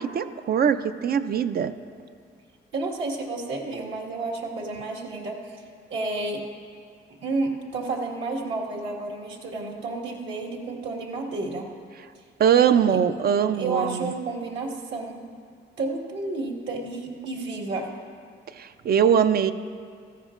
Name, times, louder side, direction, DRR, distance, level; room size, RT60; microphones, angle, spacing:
voice 1, 0.0-1.7 12.4-14.1 18.6-19.5, right 8 dB, 50° right, 10 dB, 0.6 m, -21 dB
voice 2, 2.7-5.6 5.9-6.4 7.2-11.7 12.9-13.0 13.6-15.2 15.8-17.9, right 3 dB, 75° right, -2 dB, 1.8 m, -31 dB
16.5 x 14.0 x 2.5 m, 2.1 s
cardioid pair, 90°, 20 cm